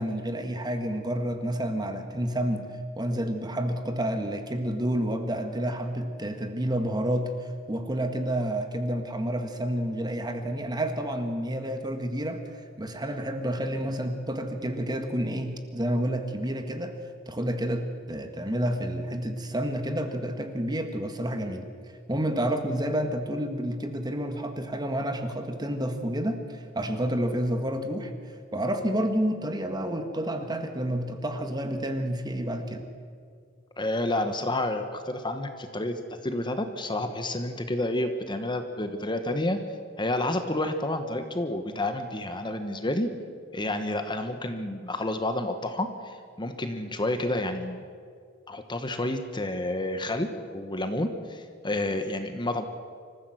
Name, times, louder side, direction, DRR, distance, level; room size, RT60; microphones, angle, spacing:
voice 1, 0.0-17.0 17.3-21.7 22.1-32.9, right 1 dB, 20° right, 6 dB, 1.7 m, -29 dB
voice 2, 33.8-39.6 40.0-43.1 43.5-47.8 48.5-50.3 50.5-52.6, left 1 dB, 25° left, 7 dB, 1.2 m, -30 dB
25.5 x 15.0 x 7.8 m, 2.2 s
head